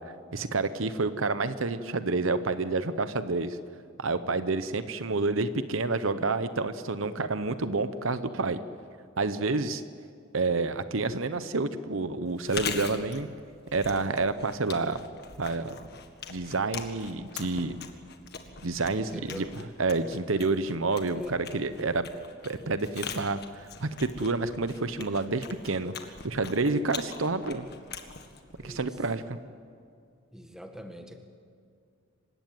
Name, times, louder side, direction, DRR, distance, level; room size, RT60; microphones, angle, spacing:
voice 1, 0.3-3.6 4.0-8.6 9.2-9.8 10.3-13.3 13.7-15.0 15.4-15.7 16.3-17.8 18.6-19.5 19.8-22.1 22.4-25.9 26.2-27.7 28.6-29.4, right 3 dB, 65° right, 12 dB, 0.9 m, -29 dB
voice 2, 4.0-4.4 18.9-19.6 21.1-21.4 28.5-29.0 30.3-31.2, equal, 5° right, 4 dB, 1.8 m, -44 dB
Chewing mastication, 12.3-29.2, left 6 dB, 50° left, 1.8 m, -42 dB
26.5 x 16.5 x 9.4 m, 2.3 s
head